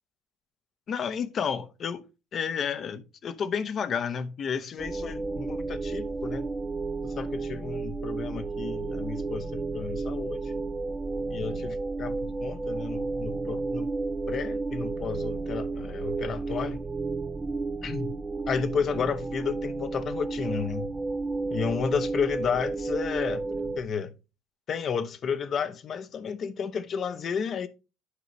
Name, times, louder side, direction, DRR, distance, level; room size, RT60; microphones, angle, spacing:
voice 1, 0.9-2.0 2.3-6.5 7.0-10.5 11.3-13.9 14.3-16.8 17.8-18.1 18.5-20.9 21.5-24.1 24.7-27.7, left 6 dB, 40° left, 0.7 m, -32 dB
sound 1, 4.8-23.8, right 3 dB, 15° right, 0.4 m, -32 dB
9.7 x 4.9 x 3.1 m
cardioid pair, 125°, 0 cm